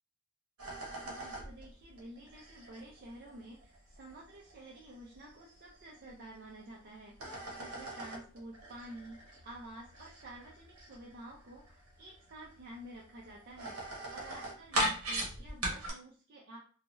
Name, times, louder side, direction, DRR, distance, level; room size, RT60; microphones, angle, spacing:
sound 1, 0.6-6.6 7.0-15.9, right 1 dB, 80° right, 0.9 m, -40 dB
voice 1, 1.0-16.6, right 1 dB, 45° right, -2 dB, 0.5 m, -50 dB
2.7 x 2.3 x 3.0 m, 0.42 s
head